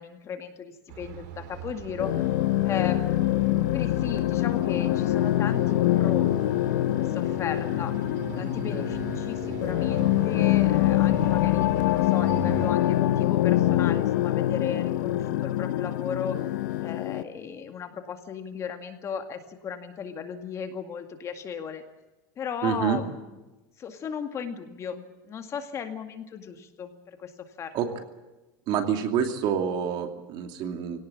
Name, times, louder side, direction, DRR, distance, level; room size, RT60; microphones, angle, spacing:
voice 1, 0.0-2.1 2.6-3.4 3.7-6.3 7.0-7.9 8.4-16.4 16.8-21.8 22.4-23.2 23.8-27.3 27.6-27.8, left 7 dB, 30° left, 6 dB, 2.1 m, -36 dB
sound 1, 0.9-12.7, right 8 dB, 75° right, 4.1 m, -40 dB
sound 2, 2.0-17.2, left 14 dB, 90° left, 1.0 m, -24 dB
voice 2, 22.6-23.0 27.7-27.9 28.7-31.0, right 8 dB, 50° right, 5 dB, 2.7 m, -27 dB
23.5 x 18.0 x 8.6 m, 1.1 s
supercardioid pair, 145°, 10 cm